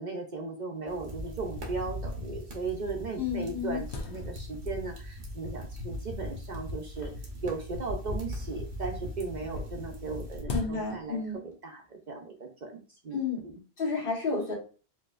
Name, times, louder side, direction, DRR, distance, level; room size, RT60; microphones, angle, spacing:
voice 1, 0.0-7.1 7.4-11.2 11.4-13.6, right 4 dB, 50° right, 2 dB, 0.7 m, -37 dB
sound 1, 0.8-0.9 1.1-1.2 1.8-1.9 2.6-2.7 3.0-4.8 5.5-6.0 6.9-8.3 9.5-11.3, left 2 dB, 85° left, 1.1 m, -41 dB
sound 2, 0.9-10.4, left 1 dB, 85° right, 1.3 m, -39 dB
voice 2, 3.2-3.8 10.5-11.4 13.1-13.4 13.8-14.5, left 4 dB, 55° left, -2 dB, 1.5 m, -31 dB
4.6 x 2.8 x 2.4 m, 0.37 s
omnidirectional pair, 1.1 m